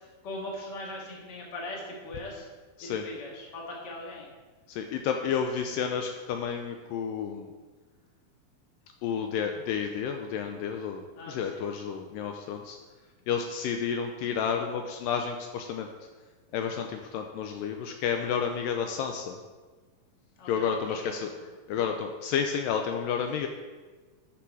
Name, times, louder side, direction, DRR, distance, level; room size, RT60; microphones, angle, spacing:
voice 1, 0.2-2.5 2.8-4.3 11.1-11.7 20.4-21.2 21.8-21.9, left 1 dB, 40° left, -2 dB, 1.7 m, -40 dB
voice 2, 4.7-7.5 9.0-12.8 13.3-15.9 16.5-19.4 20.5-21.3 21.7-23.5, left 7 dB, 80° left, 4 dB, 2.1 m, -31 dB
9.9 x 6.1 x 4.8 m, 1.4 s
omnidirectional pair, 4.2 m